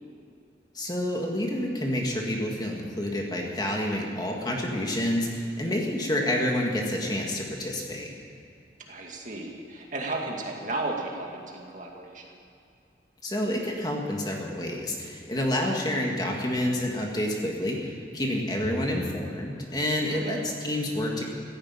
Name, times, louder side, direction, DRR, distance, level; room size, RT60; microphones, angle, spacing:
voice 1, 0.7-8.1 13.2-21.2, left 1 dB, 20° left, 0 dB, 1.9 m, -28 dB
voice 2, 8.9-12.3 20.1-20.4, right 2 dB, 45° right, 0 dB, 2.2 m, -34 dB
15.0 x 10.5 x 9.0 m, 2.5 s
head